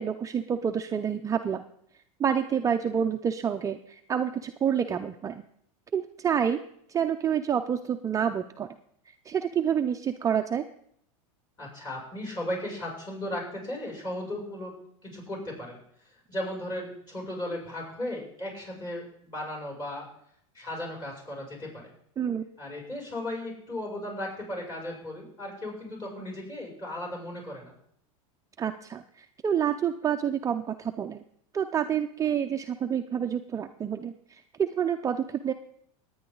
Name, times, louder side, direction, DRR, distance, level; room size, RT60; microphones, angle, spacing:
voice 1, 0.0-1.6 2.2-5.4 5.9-6.6 6.9-8.7 9.3-10.6 22.2-22.4 28.6-31.2 31.5-35.5, right 8 dB, 20° right, 5 dB, 0.5 m, -28 dB
voice 2, 11.6-15.8 16.0-20.1 20.5-21.9 22.6-27.7, left 1 dB, 25° left, -2 dB, 6.8 m, -36 dB
20.0 x 9.4 x 3.9 m, 0.69 s
supercardioid pair, 125°, 17 cm